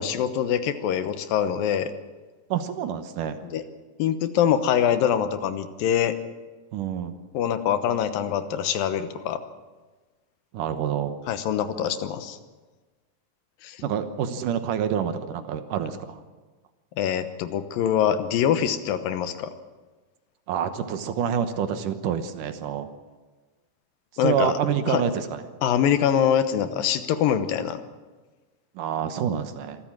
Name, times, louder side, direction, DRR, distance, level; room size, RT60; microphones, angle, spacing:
voice 1, 0.0-1.9 3.4-3.6 4.0-6.2 7.3-9.4 11.3-12.4 13.6-13.9 17.0-19.5 24.2-24.6 24.9-25.0 25.6-27.8, left 9 dB, 80° left, 10 dB, 2.8 m, -24 dB
voice 2, 2.5-3.4 6.7-7.2 10.5-11.2 13.8-16.2 20.5-22.9 24.2-25.4 28.8-29.8, right 8 dB, 70° right, 9 dB, 2.6 m, -27 dB
25.0 x 14.0 x 7.5 m, 1.3 s
omnidirectional pair, 4.0 m